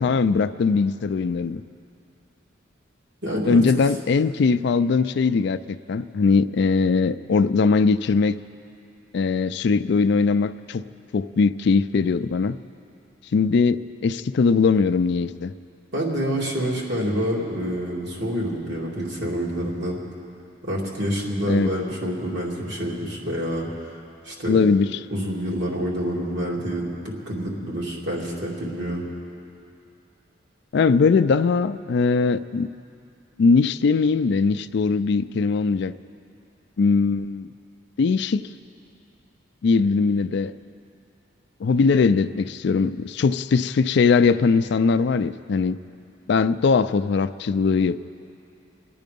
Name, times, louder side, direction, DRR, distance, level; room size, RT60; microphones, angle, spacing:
voice 1, 0.0-1.6 3.5-8.4 9.1-10.8 11.1-12.6 13.3-15.5 21.5-21.7 24.5-24.9 30.7-32.7 33.4-35.9 36.8-37.5 38.0-38.5 39.6-40.5 41.6-45.8 46.3-48.0, left 4 dB, 60° left, 13 dB, 0.4 m, -20 dB
voice 2, 3.2-3.6 15.9-20.0 20.6-23.9 24.2-24.6 25.1-29.0, equal, 65° right, -3 dB, 2.9 m, -27 dB
26.0 x 9.4 x 5.3 m, 2.6 s
head